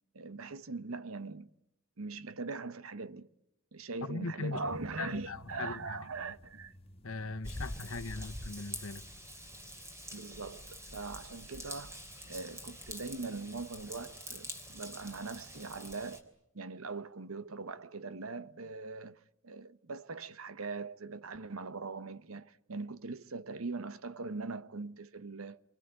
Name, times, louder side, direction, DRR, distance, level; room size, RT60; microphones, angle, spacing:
voice 1, 0.1-1.5 2.0-3.3 3.7-6.7 8.2-8.3 10.1-12.0 12.3-25.6, right 3 dB, 80° right, 1.0 m, -41 dB
voice 2, 4.0-4.6 5.0-6.0 7.0-9.0, left 3 dB, 80° left, 1.2 m, -39 dB
sound 1, 4.6-10.1, left 1 dB, 30° left, 2.2 m, -54 dB
Raindrop / Vehicle horn car horn honking / Trickle dribble, 7.4-16.2, equal, 15° right, 3.4 m, -46 dB
28.0 x 24.0 x 7.9 m
head